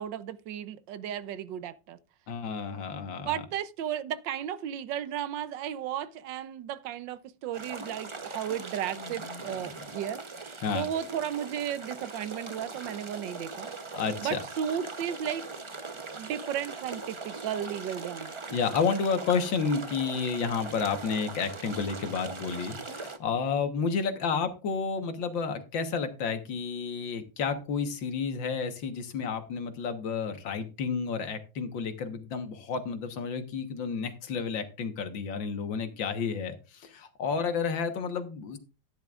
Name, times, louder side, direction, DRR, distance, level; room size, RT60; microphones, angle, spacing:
voice 1, 0.0-2.0 3.2-10.2 10.7-13.7 14.2-15.5 16.2-18.3, right 9 dB, 80° right, 1.4 m, -34 dB
voice 2, 2.3-3.4 9.0-9.8 10.6-10.9 13.9-14.4 18.5-38.6, left 5 dB, 85° left, 2.0 m, -31 dB
sound 1, 7.5-23.2, right 3 dB, 35° right, 0.4 m, -41 dB
14.0 x 10.5 x 2.4 m
omnidirectional pair, 2.0 m